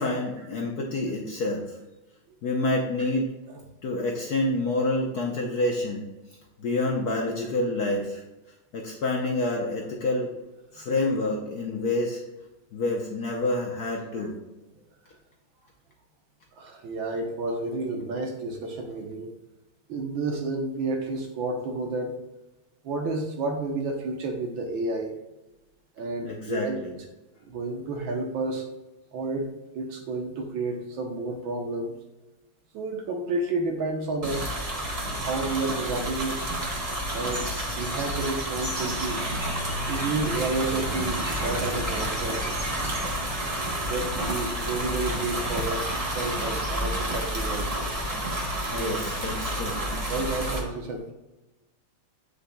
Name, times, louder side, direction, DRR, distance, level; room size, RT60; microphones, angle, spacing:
voice 1, 0.0-1.6 2.4-3.3 3.8-6.1 6.6-8.2 8.7-10.3 10.7-12.2 12.7-14.4 26.2-27.0 40.1-40.3 48.7-49.9, left 2 dB, 60° left, -1 dB, 1.1 m, -28 dB
voice 2, 16.6-19.3 19.9-22.2 22.8-25.1 26.0-26.8 27.5-28.6 29.1-29.5 29.7-31.9 32.7-34.5 35.1-36.4 37.1-39.2 39.9-42.4 43.9-47.9 48.7-49.0 50.1-51.1, right 2 dB, 70° right, 3 dB, 1.6 m, -31 dB
sound 1, 34.2-50.6, right 1 dB, 30° right, 0.6 m, -30 dB
7.8 x 6.6 x 2.2 m, 1.0 s
omnidirectional pair, 2.4 m